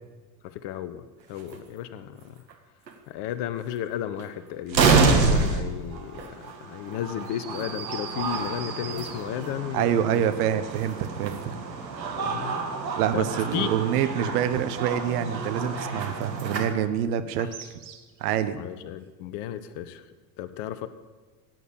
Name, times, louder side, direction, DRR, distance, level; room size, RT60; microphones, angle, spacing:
voice 1, 0.4-2.3 3.1-10.2 12.2-12.6 13.1-13.7 17.4-17.5 18.6-20.0 20.4-20.9, left 11 dB, 55° left, 12 dB, 1.3 m, -34 dB
sound 1, 1.4-1.6 2.5-2.6 2.9-3.0 4.2-4.3 4.7-16.7, right 4 dB, 85° right, 2.0 m, -28 dB
sound 2, 7.3-9.6 17.5-18.2, right 8 dB, 40° right, 1.9 m, -40 dB
voice 2, 9.7-11.5 13.0-17.7 18.2-18.6, right 9 dB, 65° right, 11 dB, 1.3 m, -26 dB
16.5 x 9.4 x 8.8 m, 1.3 s
figure-of-eight pair, 70°, 50 cm